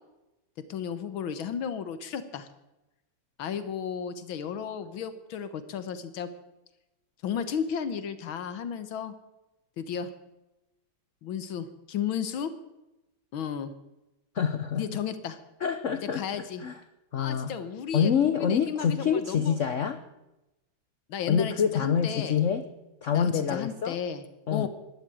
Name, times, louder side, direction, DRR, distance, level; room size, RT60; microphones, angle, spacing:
voice 1, 0.7-2.5 3.4-6.3 7.2-9.1 9.8-10.1 11.2-12.5 13.3-13.7 14.8-15.4 16.1-16.6 17.2-19.6 21.1-22.4 23.1-24.2 24.5-24.7, left 7 dB, 80° left, 12 dB, 1.9 m, -33 dB
voice 2, 14.3-15.0 15.6-16.8 17.1-17.5 17.9-20.0 21.3-22.7 23.0-24.0 24.5-24.7, left 7 dB, 55° left, 10 dB, 0.9 m, -26 dB
12.5 x 11.5 x 9.1 m, 0.96 s
omnidirectional pair, 2.2 m